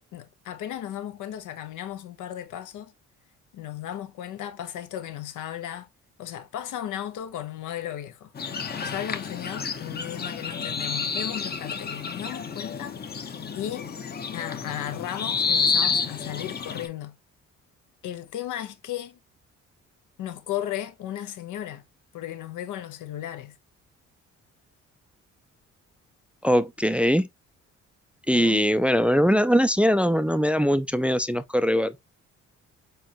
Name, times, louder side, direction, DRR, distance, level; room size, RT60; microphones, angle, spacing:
voice 1, 0.0-2.9 3.5-5.9 6.2-13.0 13.5-14.0 14.3-17.2 18.0-19.2 20.2-21.8 22.1-23.6 28.3-28.7, left 11 dB, 80° left, 0.8 m, -35 dB
sound 1, 8.4-16.9, left 5 dB, 35° left, 0.7 m, -30 dB
voice 2, 26.4-27.3 28.3-31.9, equal, 5° right, 0.3 m, -21 dB
4.6 x 3.8 x 2.8 m
cardioid pair, 90°, 30 cm